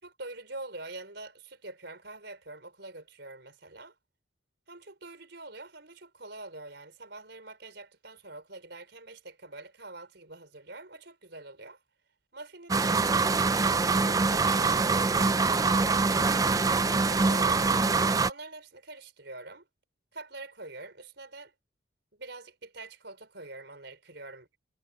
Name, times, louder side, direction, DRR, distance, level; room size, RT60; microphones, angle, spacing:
voice 1, 0.0-4.0 4.7-11.8 12.3-13.0 14.0-16.1 17.1-17.9 18.3-19.7 20.1-21.5 22.1-24.5, right 2 dB, 60° right, 5.3 m, -45 dB
sound 1, 12.7-18.3, right 4 dB, 20° right, 0.3 m, -24 dB
head